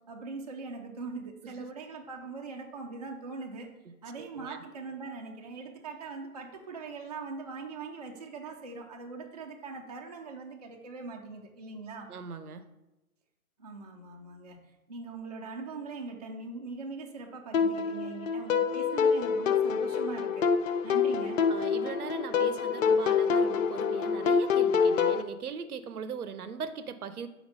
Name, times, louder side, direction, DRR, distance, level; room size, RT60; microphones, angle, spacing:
voice 1, 0.1-3.7 4.0-12.1 13.6-20.5 20.8-21.4, right 4 dB, 30° right, 1 dB, 0.3 m, -41 dB
voice 2, 3.9-4.6 12.1-12.7 21.5-27.3, right 6 dB, 80° right, 12 dB, 0.6 m, -40 dB
sound 1, 17.5-25.2, left 6 dB, 60° left, 0.5 m, -26 dB
4.3 x 4.1 x 5.3 m, 0.98 s
figure-of-eight pair, 130°, 44 cm